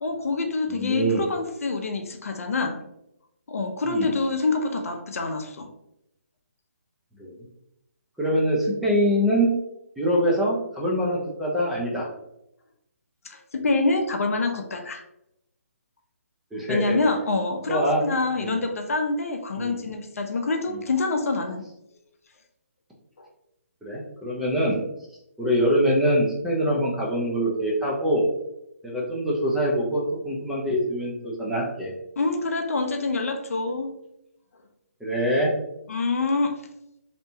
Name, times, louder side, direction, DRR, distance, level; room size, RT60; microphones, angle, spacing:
voice 1, 0.0-2.8 3.5-5.7 13.2-15.0 16.7-21.6 23.2-23.3 32.2-33.9 35.9-36.6, left 3 dB, 70° left, 5 dB, 0.5 m, -26 dB
voice 2, 0.7-1.2 3.9-4.1 7.2-7.3 8.2-9.5 10.0-12.1 16.5-17.0 17.7-18.0 18.4-18.6 19.6-19.8 20.7-20.8 23.8-24.8 25.4-28.2 28.8-31.9 35.0-35.5, equal, 5° right, -5 dB, 0.4 m, -24 dB
2.8 x 2.1 x 2.6 m, 0.83 s
hypercardioid pair, 150°, 8 cm